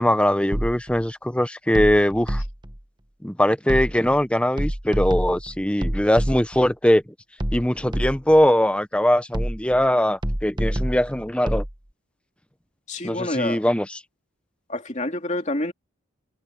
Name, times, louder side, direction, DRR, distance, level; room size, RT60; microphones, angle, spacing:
voice 1, 0.0-2.4 3.2-7.0 7.5-11.6 13.0-14.0, equal, 5° left, 0.8 m, -21 dB
sound 1, 0.5-1.0 1.7-2.8 3.7-4.2 4.6-6.7 7.4-8.4 9.3-9.9 10.2-11.7, equal, 20° right, 1.3 m, -27 dB
voice 2, 12.9-13.6 14.7-15.7, left 2 dB, 35° left, 2.8 m, -27 dB
head